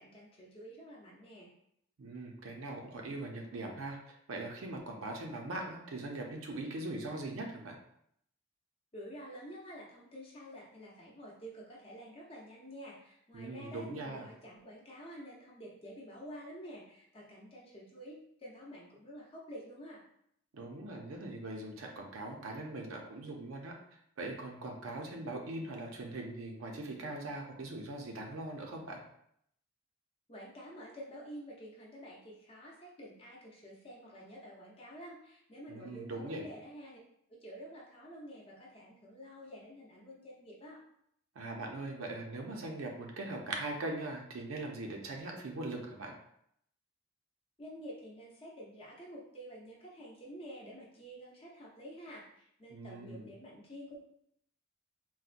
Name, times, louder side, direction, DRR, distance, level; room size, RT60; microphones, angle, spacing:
voice 1, 0.0-1.5 8.9-20.0 30.3-37.0 37.3-40.8 47.6-54.0, equal, 25° left, -4 dB, 0.6 m, -49 dB
voice 2, 2.0-7.8 13.3-14.3 20.5-23.7 24.2-29.0 35.7-36.5 41.4-46.1 52.7-53.3, right 2 dB, 75° right, 1 dB, 0.5 m, -41 dB
4.0 x 2.1 x 2.5 m, 0.72 s
head